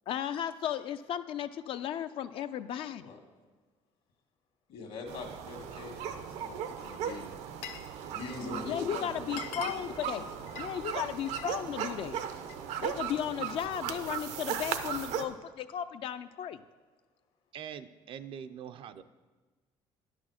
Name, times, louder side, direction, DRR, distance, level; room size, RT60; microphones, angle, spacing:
voice 1, 0.1-3.2 8.6-10.3 10.6-12.2 12.8-16.6, left 9 dB, 55° left, 10 dB, 0.4 m, -35 dB
voice 2, 4.7-7.3 7.9-9.1 9.8-10.6, left 3 dB, 70° left, 2 dB, 1.8 m, -43 dB
sound 1, 5.1-15.2, right 8 dB, 80° right, 0.7 m, -37 dB
Glass, 6.9-8.6 9.0-9.1 9.3-11.5 11.9-12.7, left 9 dB, 90° left, 1.0 m, -45 dB
voice 3, 17.5-19.0, right 8 dB, 55° right, 11 dB, 0.4 m, -43 dB
10.0 x 6.2 x 6.4 m, 1.3 s
cardioid pair, 150°, 11 cm